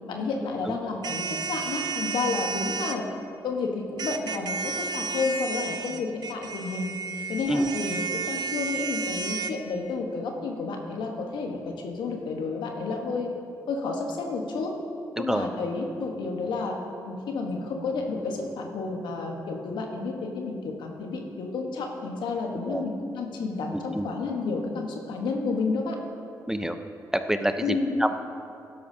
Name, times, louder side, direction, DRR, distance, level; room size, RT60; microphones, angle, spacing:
voice 1, 0.1-3.1 3.4-6.9 7.3-13.3 13.7-14.7 15.1-16.8 17.0-26.0 27.6-28.0, left 3 dB, 80° left, 2 dB, 1.2 m, -31 dB
sound 1, 1.0-3.0 4.0-9.5, right 5 dB, 65° right, 0.5 m, -32 dB
voice 2, 15.2-15.5 22.6-22.8 23.7-24.1 26.5-26.8 27.1-27.7 28.0-28.1, right 1 dB, 5° right, 8 dB, 0.6 m, -27 dB
12.0 x 11.5 x 2.8 m, 2.5 s
supercardioid pair, 55°, 8 cm